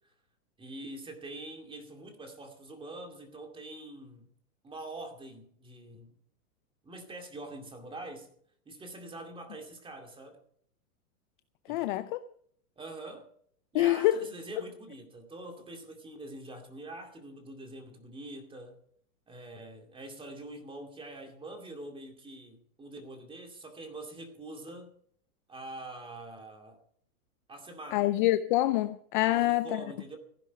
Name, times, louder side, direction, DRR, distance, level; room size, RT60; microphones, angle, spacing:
voice 1, 0.6-4.3 4.6-6.1 6.8-8.3 8.7-10.4 11.7-11.9 12.8-13.3 13.7-18.8 19.3-24.9 25.5-26.8 27.5-28.1 29.2-30.2, right 2 dB, 10° right, 2.3 m, -44 dB
voice 2, 11.7-12.2 13.7-14.2 27.9-29.8, left 16 dB, 35° left, 0.5 m, -26 dB
15.0 x 10.5 x 5.8 m
hypercardioid pair, 140°, 45 cm